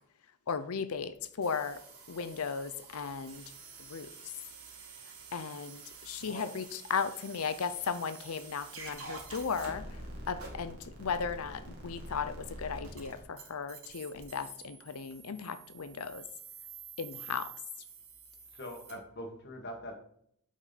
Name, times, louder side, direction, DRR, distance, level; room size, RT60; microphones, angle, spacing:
voice 1, 0.5-1.8 2.1-3.4 3.9-4.1 5.3-9.8 10.3-16.2 17.0-17.5, left 5 dB, 85° left, 12 dB, 0.6 m, -36 dB
sound 1, 1.4-18.9, right 3 dB, 80° right, 2.2 m, -48 dB
voice 2, 18.5-19.9, equal, 50° left, 3 dB, 1.7 m, -43 dB
8.7 x 5.2 x 4.1 m, 0.67 s
head